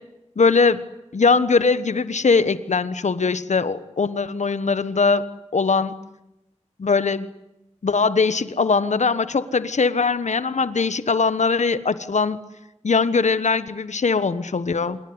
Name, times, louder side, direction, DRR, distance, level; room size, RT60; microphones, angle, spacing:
voice 1, 0.4-0.8 1.1-5.3 5.5-6.0 6.8-7.3 7.8-12.4 12.8-15.0, left 4 dB, 85° left, 14 dB, 1.3 m, -21 dB
26.0 x 22.0 x 9.7 m, 0.91 s
wide cardioid pair, 55°, 12 cm